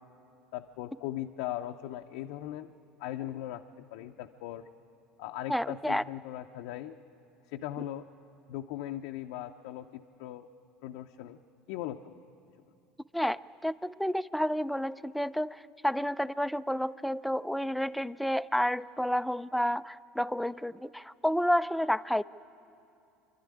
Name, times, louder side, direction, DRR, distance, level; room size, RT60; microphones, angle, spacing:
voice 1, 0.5-2.7 3.0-4.6 5.2-7.0 7.5-8.1 8.5-10.5 10.8-11.4 11.7-12.2, left 13 dB, 75° left, 3 dB, 0.6 m, -39 dB
voice 2, 5.5-6.0 13.1-22.2, equal, ahead, 15 dB, 0.4 m, -30 dB
26.5 x 12.0 x 9.9 m, 2.7 s
supercardioid pair, 100°, 0 cm